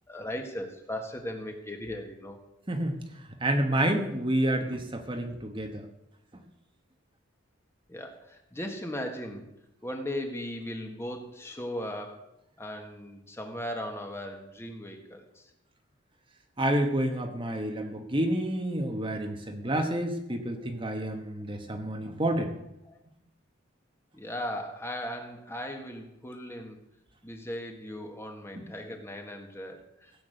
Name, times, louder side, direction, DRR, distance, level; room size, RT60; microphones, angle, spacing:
voice 1, 0.1-2.4 7.9-9.5 9.8-12.2 12.6-15.5 19.6-19.8 20.6-20.7 22.8-23.0 24.1-26.8 27.2-30.1, left 1 dB, 15° left, 4 dB, 1.6 m, -38 dB
voice 2, 2.7-3.0 3.4-5.8 16.6-22.5 28.5-28.7, right 1 dB, 25° right, 4 dB, 1.2 m, -29 dB
16.5 x 8.4 x 6.8 m, 0.84 s
head